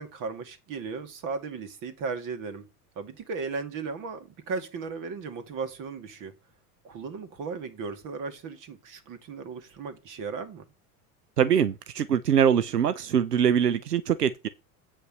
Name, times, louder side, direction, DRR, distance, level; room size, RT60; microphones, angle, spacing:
voice 1, 0.0-2.7 3.0-6.3 6.8-10.6, right 4 dB, 45° right, 2.3 m, -36 dB
voice 2, 11.4-14.5, right 8 dB, 90° right, 0.7 m, -23 dB
8.5 x 5.3 x 5.4 m
figure-of-eight pair, 80°, 46 cm